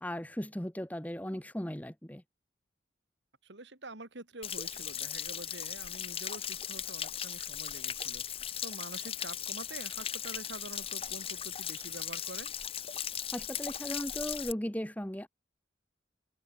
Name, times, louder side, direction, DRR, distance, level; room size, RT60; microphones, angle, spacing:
voice 1, 0.0-2.2 13.3-15.3, equal, 10° left, 1.1 m, -37 dB
voice 2, 3.4-12.5, right 2 dB, 70° right, 3.1 m, -47 dB
Stream / Splash splatter / Trickle dribble, 4.4-14.5, left 9 dB, 30° left, 1.4 m, -38 dB
head